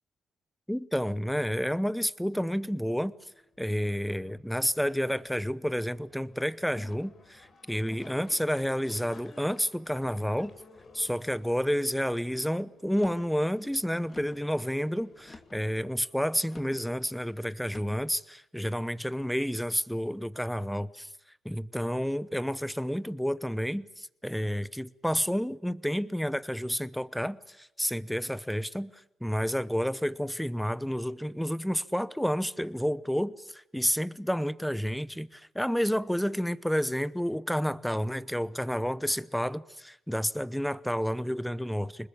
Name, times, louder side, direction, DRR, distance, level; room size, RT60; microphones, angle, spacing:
voice 1, 0.7-3.1 3.6-10.5 10.9-21.1 21.4-42.1, equal, ahead, 0.9 m, -30 dB
sound 1, 2.6-16.2, left 3 dB, 50° left, 3.8 m, -58 dB
sound 2, 6.7-7.2 7.9-8.3 9.0-9.5 10.2-10.6 11.3-11.7 12.8-13.3 14.1-14.5 15.2-15.7 16.5-16.8 17.6-18.0, left 3 dB, 25° left, 2.6 m, -50 dB
25.5 x 20.5 x 8.5 m
cardioid pair, 90°, 0 cm